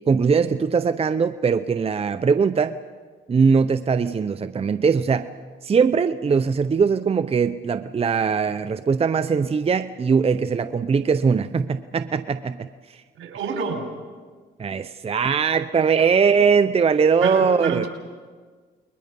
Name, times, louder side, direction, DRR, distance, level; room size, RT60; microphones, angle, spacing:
voice 1, 0.1-2.8 3.3-5.3 5.6-12.7 14.6-17.9, right 5 dB, 30° right, 11 dB, 0.7 m, -21 dB
voice 2, 13.2-13.9 17.2-17.9, right 5 dB, 80° right, 4 dB, 4.6 m, -27 dB
30.0 x 21.5 x 5.4 m, 1.5 s
cardioid pair, 90°, 20 cm